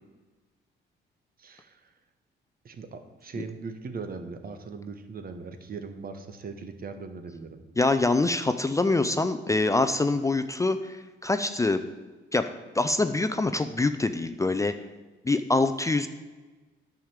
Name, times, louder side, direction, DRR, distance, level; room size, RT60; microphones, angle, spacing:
voice 1, 1.4-1.9 2.6-7.6, right 4 dB, 50° right, 8 dB, 1.2 m, -39 dB
voice 2, 7.8-11.8 12.3-12.5 12.7-14.8 15.2-16.1, left 2 dB, 15° left, 9 dB, 0.5 m, -25 dB
9.2 x 5.0 x 7.3 m, 1.2 s
cardioid pair, 90°, 20 cm